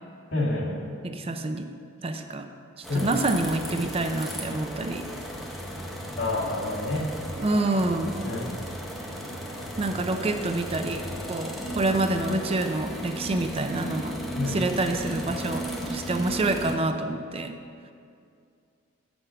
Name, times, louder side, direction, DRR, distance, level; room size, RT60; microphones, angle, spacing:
voice 1, 0.3-0.8 2.9-3.1 6.2-7.1 8.2-8.5 14.3-14.6, left 2 dB, 85° left, -3 dB, 1.8 m, -28 dB
voice 2, 1.0-1.7 2.0-2.5 2.8-5.1 7.4-8.2 9.8-14.2 14.5-17.6, right 2 dB, 30° right, 6 dB, 0.5 m, -27 dB
sound 1, 2.8-16.8, equal, ahead, 0.8 m, -35 dB
9.0 x 6.0 x 5.5 m, 2.4 s
head